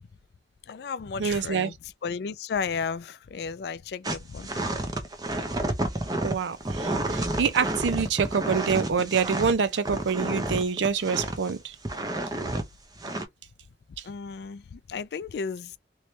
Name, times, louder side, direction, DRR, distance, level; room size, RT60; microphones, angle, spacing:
voice 1, 0.6-4.7 14.0-15.8, left 5 dB, 60° left, 0.3 m, -34 dB
voice 2, 1.2-1.7 6.2-11.8, right 6 dB, 80° right, 0.5 m, -26 dB
sound 1, 4.0-11.5 11.8-12.6 13.0-13.2, right 1 dB, 20° right, 0.6 m, -30 dB
3.1 x 2.9 x 3.1 m
head